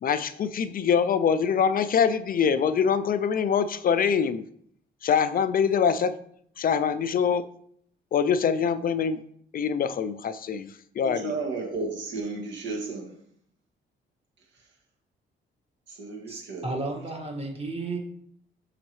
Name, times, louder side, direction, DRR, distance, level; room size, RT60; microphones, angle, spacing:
voice 1, 0.0-4.4 5.0-6.2 6.6-7.5 8.1-9.2 9.5-11.3, left 7 dB, 45° left, 13 dB, 0.4 m, -24 dB
voice 2, 11.0-13.1 15.9-16.8, right 3 dB, 65° right, 1 dB, 2.0 m, -33 dB
voice 3, 16.3-18.0, right 2 dB, 30° right, 1 dB, 1.8 m, -33 dB
6.2 x 5.7 x 3.1 m, 0.66 s
cardioid pair, 90°, 20 cm